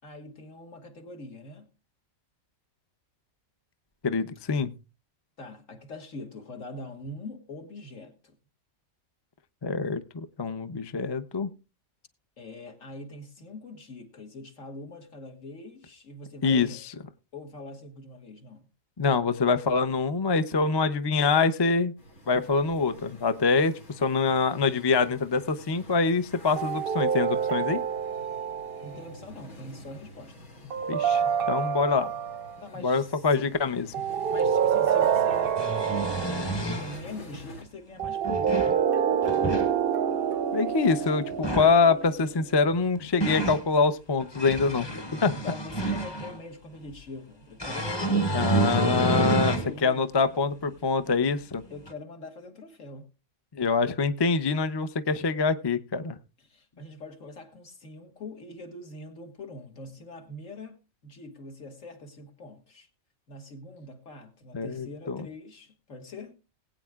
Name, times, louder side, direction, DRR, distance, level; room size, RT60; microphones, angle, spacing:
voice 1, 0.0-1.7 5.4-8.4 12.4-16.8 17.3-18.7 28.8-30.5 32.6-33.5 34.3-35.6 35.9-38.8 45.3-48.6 49.6-50.1 51.7-53.1 56.4-60.8 61.0-62.9 63.3-66.4, left 2 dB, 65° left, 2.1 m, -43 dB
voice 2, 4.0-4.7 9.6-11.5 16.4-16.8 19.0-21.9 22.3-27.8 30.9-32.1 32.8-33.9 40.5-45.4 48.3-51.6 53.5-56.2 64.5-65.2, left 4 dB, 35° left, 0.4 m, -25 dB
sound 1, 22.0-37.6, equal, 85° left, 3.3 m, -48 dB
sound 2, 26.6-29.0 30.7-32.5 33.9-36.7 38.0-42.5, right 8 dB, 55° right, 0.7 m, -27 dB
sound 3, 34.4-34.5 35.3-37.0 38.0-38.8 39.2-39.7 41.3-41.8 42.7-43.6 44.2-46.4 47.6-49.7 50.2-50.3 51.9-52.0, right 2 dB, 20° left, 1.0 m, -29 dB
20.0 x 9.0 x 2.4 m
omnidirectional pair, 1.5 m